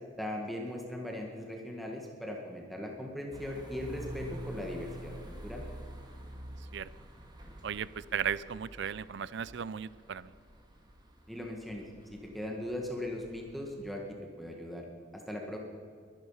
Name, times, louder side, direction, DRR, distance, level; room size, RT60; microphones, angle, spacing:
voice 1, 0.2-5.2 5.4-5.6 11.3-11.8 12.1-14.0 14.4-14.8 15.1-15.6, left 1 dB, ahead, 0 dB, 1.6 m, -39 dB
sound 1, 3.3-13.8, right 1 dB, 25° right, 2.2 m, -48 dB
voice 2, 7.6-10.3, right 8 dB, 65° right, 19 dB, 0.4 m, -36 dB
22.0 x 11.5 x 5.6 m, 2.2 s
head